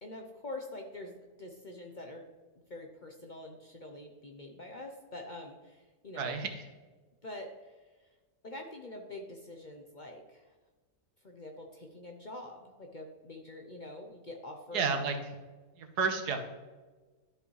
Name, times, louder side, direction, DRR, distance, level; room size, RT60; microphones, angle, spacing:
voice 1, 0.0-2.2 2.7-6.4 7.2-7.7 8.4-10.5 11.2-14.9, left 2 dB, 45° left, 2 dB, 0.7 m, -45 dB
voice 2, 6.2-6.5 14.7-15.1 15.8-16.4, right 5 dB, 90° right, 6 dB, 1.6 m, -30 dB
12.0 x 5.4 x 3.1 m, 1.3 s
omnidirectional pair, 1.6 m